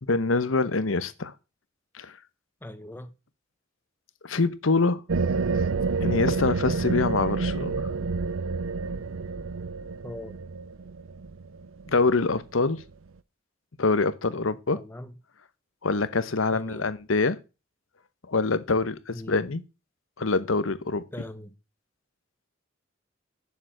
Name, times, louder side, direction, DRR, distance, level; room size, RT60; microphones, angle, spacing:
voice 1, 0.0-1.3 1.9-2.1 4.2-5.0 6.0-7.9 11.9-12.8 13.8-14.8 15.8-17.4 18.3-19.6 20.2-21.0, left 3 dB, 85° left, 1.0 m, -25 dB
voice 2, 2.6-3.1 10.0-10.4 14.7-15.1 16.5-16.9 19.1-19.5 21.1-21.5, left 1 dB, 10° left, 1.0 m, -40 dB
sound 1, 5.1-12.4, right 4 dB, 80° right, 0.6 m, -29 dB
7.2 x 6.9 x 7.7 m
head